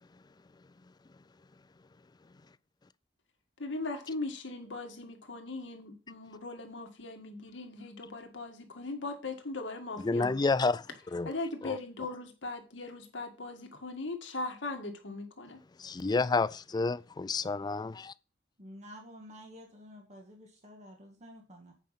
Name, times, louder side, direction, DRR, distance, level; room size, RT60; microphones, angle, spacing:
voice 1, 3.6-10.4 11.2-15.6, left 2 dB, 75° left, 1.8 m, -39 dB
voice 2, 10.0-11.3 11.6-11.8 15.8-18.1, left 3 dB, 20° left, 0.3 m, -30 dB
voice 3, 18.6-21.7, equal, 40° right, 1.7 m, -50 dB
8.5 x 5.1 x 5.8 m
head